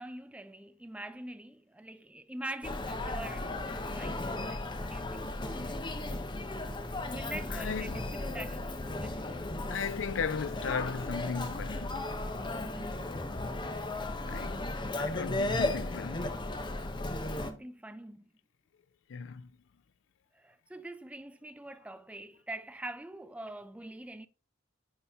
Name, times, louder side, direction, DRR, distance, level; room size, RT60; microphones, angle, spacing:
voice 1, 0.0-5.9 7.1-9.3 12.6-13.1 16.1-16.4 17.4-18.3 20.3-24.3, right 1 dB, 5° right, 0.4 m, -44 dB
Human voice, 2.6-17.5, left 2 dB, 25° left, 0.7 m, -35 dB
voice 2, 7.5-8.1 9.7-12.0 14.3-14.6 15.0-16.3 19.1-19.5, left 6 dB, 65° left, 0.4 m, -36 dB
9.5 x 4.3 x 3.5 m
head